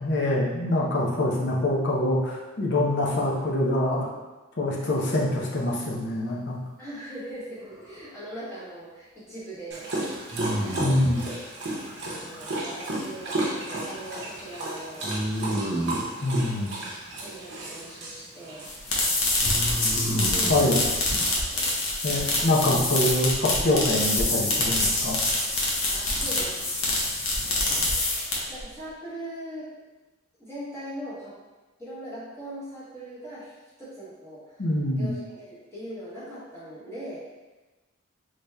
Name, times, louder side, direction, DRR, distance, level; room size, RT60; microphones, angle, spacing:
voice 1, 0.0-4.1 4.6-6.6 10.8-11.2 16.2-16.8 20.5-20.8 22.0-25.2 34.6-35.1, left 1 dB, 50° left, -3 dB, 0.6 m, -25 dB
voice 2, 4.7-5.1 6.8-10.1 10.5-11.4 12.1-15.1 16.2-16.7 17.2-18.7 20.1-21.0 21.3-21.7 25.9-27.0 27.4-28.1 28.5-29.7 30.4-31.4 31.8-34.6 34.9-37.3, right 1 dB, 10° left, -10 dB, 1.0 m, -41 dB
sound 1, 7.6-8.2 10.3-11.3 15.0-16.1 19.4-20.7, equal, 15° right, 0.4 m, -30 dB
Dog, 9.7-21.3, right 1 dB, 50° right, 0.7 m, -34 dB
sound 2, 18.6-28.6, left 2 dB, 85° left, 0.8 m, -25 dB
4.0 x 3.3 x 2.2 m, 1.2 s
head